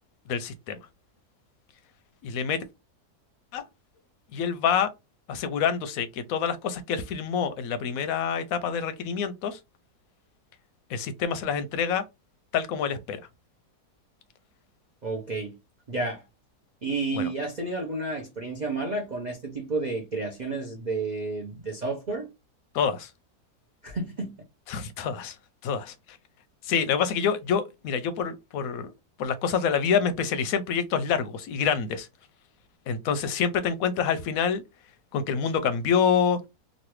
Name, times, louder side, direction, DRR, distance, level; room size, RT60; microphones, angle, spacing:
voice 1, 0.3-0.8 2.2-2.6 3.5-3.6 4.3-4.9 5.3-9.6 10.9-12.0 12.5-13.2 17.1-17.3 22.7-23.1 24.7-25.3 25.6-25.9 26.7-28.9 29.2-32.1 32.9-34.6 35.1-36.4, left 7 dB, 70° left, 0.9 m, -27 dB
voice 2, 15.0-15.6 15.9-16.2 16.8-22.3 23.8-24.4, right 3 dB, 65° right, 0.4 m, -31 dB
3.1 x 2.4 x 3.0 m
omnidirectional pair, 1.7 m